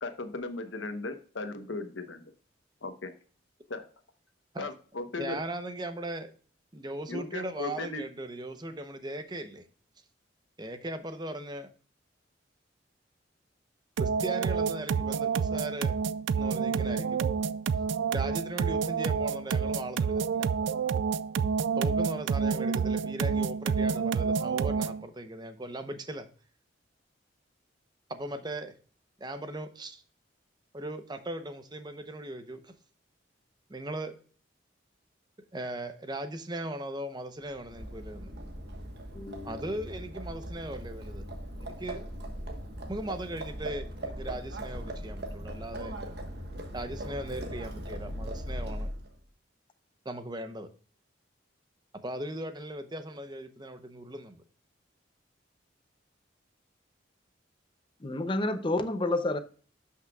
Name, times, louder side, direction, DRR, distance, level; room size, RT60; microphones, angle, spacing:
voice 1, 0.0-2.3 2.8-3.1 3.7-3.8 4.6-5.4 7.1-8.0, left 3 dB, 80° left, 1.0 m, -37 dB
voice 2, 5.2-6.3 6.7-9.7 10.6-11.7 14.0-15.9 16.3-17.2 18.1-20.5 21.8-26.3 28.1-28.7 29.2-30.0 30.7-32.7 33.7-34.2 35.5-38.3 39.4-41.2 41.6-42.0 42.9-45.9 46.7-48.9 50.0-50.7 51.9-54.4, right 1 dB, 20° right, 0.7 m, -38 dB
sound 1, 14.0-25.0, right 6 dB, 75° right, 0.3 m, -28 dB
Livestock farm animals working animals, 37.5-49.2, equal, 60° right, 1.3 m, -39 dB
voice 3, 39.1-39.7 58.0-59.4, left 2 dB, 25° left, 0.6 m, -30 dB
12.0 x 5.8 x 2.3 m
head